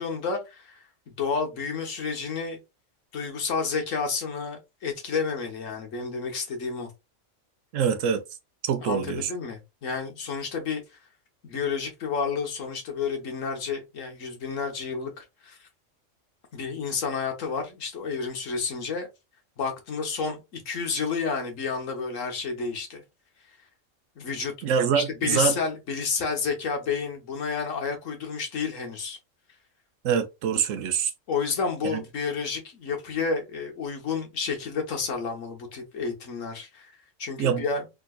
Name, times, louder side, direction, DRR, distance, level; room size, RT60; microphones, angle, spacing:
voice 1, 0.0-2.6 3.1-6.9 8.8-10.8 11.4-15.7 16.5-19.1 19.6-23.0 24.2-24.5 24.9-29.2 31.3-36.9 37.2-37.8, left 5 dB, 75° left, 1.4 m, -30 dB
voice 2, 7.7-8.2 8.6-9.3 24.6-25.5 30.0-31.1 31.8-32.0 37.4-37.7, right 7 dB, 80° right, 1.0 m, -25 dB
3.6 x 2.7 x 2.3 m
omnidirectional pair, 1.3 m